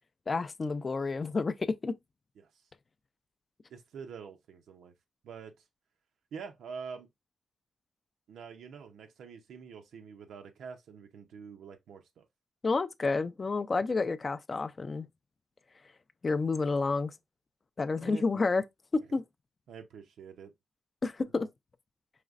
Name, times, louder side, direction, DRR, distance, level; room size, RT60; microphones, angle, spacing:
voice 1, 0.3-1.5 1.8-1.9 12.6-15.1 16.2-17.1 17.8-18.6 19.1-19.2 21.0-21.5, left 3 dB, 30° left, 0.3 m, -30 dB
voice 2, 3.7-4.9 5.2-5.5 6.3-7.1 8.3-12.3 18.0-18.4 19.7-20.5 21.3-21.5, right 6 dB, 90° right, 0.5 m, -46 dB
4.9 x 3.1 x 2.4 m
wide cardioid pair, 140°, 0 cm